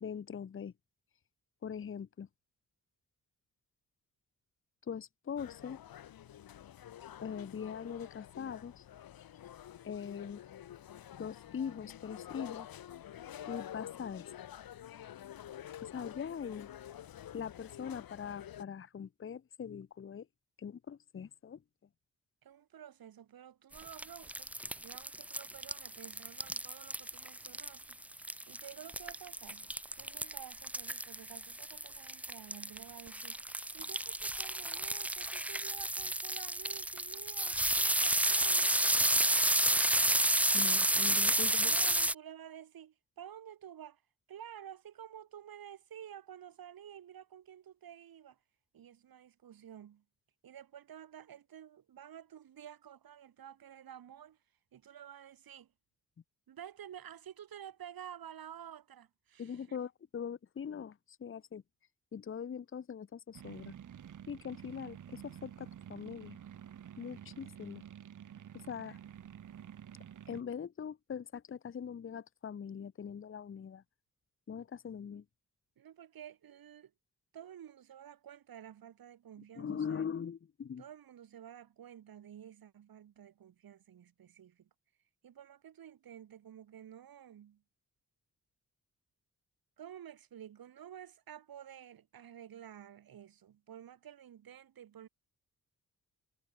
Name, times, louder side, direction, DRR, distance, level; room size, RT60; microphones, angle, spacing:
voice 1, 0.0-0.7 1.6-2.3 4.9-5.8 7.2-8.8 9.8-10.4 11.2-12.7 13.5-14.3 15.8-16.7 17.3-20.3 20.6-21.6 40.5-41.7 59.4-61.6 62.1-63.7 64.3-66.4 67.0-67.8 68.7-69.0 70.3-73.8 74.5-75.2 79.6-80.8, left 7 dB, 35° left, 1.0 m, -42 dB
sound 1, 5.4-18.7, left 11 dB, 85° left, 1.3 m, -49 dB
voice 2, 22.4-24.5 24.8-28.0 28.5-29.7 29.9-33.5 33.7-38.8 41.4-44.0 44.3-48.4 48.7-50.0 50.4-54.4 54.7-55.7 56.5-59.8 75.8-76.9 77.3-80.0 80.8-84.7 85.2-87.6 89.8-95.1, right 10 dB, 85° right, 3.3 m, -51 dB
sound 2, 23.7-42.1, right 1 dB, 5° right, 0.4 m, -31 dB
sound 3, 63.3-70.4, right 9 dB, 60° right, 1.3 m, -50 dB
wide cardioid pair, 170°, 35 cm